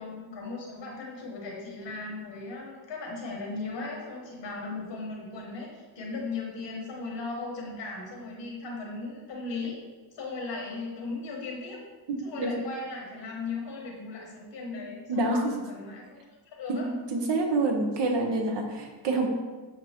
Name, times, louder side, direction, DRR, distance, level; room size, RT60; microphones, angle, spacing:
voice 1, 0.0-9.8 10.1-11.8 12.2-16.2 16.6-16.9, left 3 dB, 65° left, -1 dB, 1.3 m, -37 dB
voice 2, 12.1-12.5 14.7-14.8 15.1-15.5 16.7-19.3, right 2 dB, 65° right, 3 dB, 0.8 m, -27 dB
7.0 x 2.6 x 2.9 m, 1.3 s
cardioid pair, 120°, 46 cm